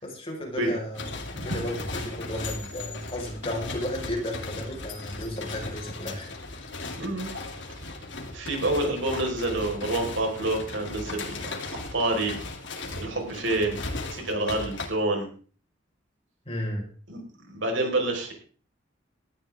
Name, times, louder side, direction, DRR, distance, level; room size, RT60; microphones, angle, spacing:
voice 1, 0.0-6.7 16.4-16.9, left 1 dB, 30° left, 0 dB, 5.0 m, -34 dB
sound 1, 0.9-14.9, left 2 dB, 65° left, 2.9 m, -37 dB
voice 2, 6.9-7.3 7.7-7.9 8.3-12.3 13.0-13.8 14.1-15.3 17.1-18.3, right 2 dB, 75° right, 2 dB, 4.9 m, -28 dB
18.5 x 13.5 x 3.7 m, 0.41 s
head